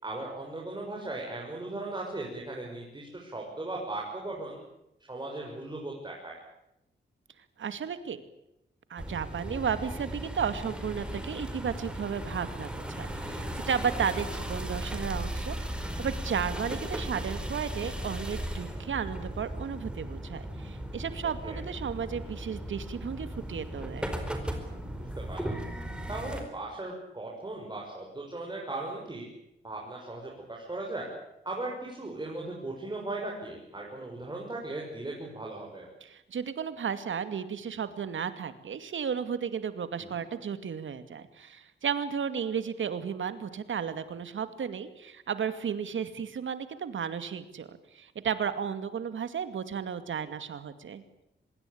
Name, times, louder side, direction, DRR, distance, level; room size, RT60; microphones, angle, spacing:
voice 1, 0.0-4.6 5.1-6.4 21.4-21.6 25.0-25.6 26.1-29.2 29.6-31.1 31.4-35.9 40.0-40.2, right 2 dB, 20° right, -2 dB, 6.4 m, -38 dB
voice 2, 7.6-8.2 8.9-24.1 36.0-51.0, right 7 dB, 90° right, 11 dB, 2.4 m, -34 dB
sound 1, 9.0-26.4, right 1 dB, 5° right, 4.6 m, -36 dB
25.5 x 21.5 x 8.8 m, 0.85 s
wide cardioid pair, 130°, 19 cm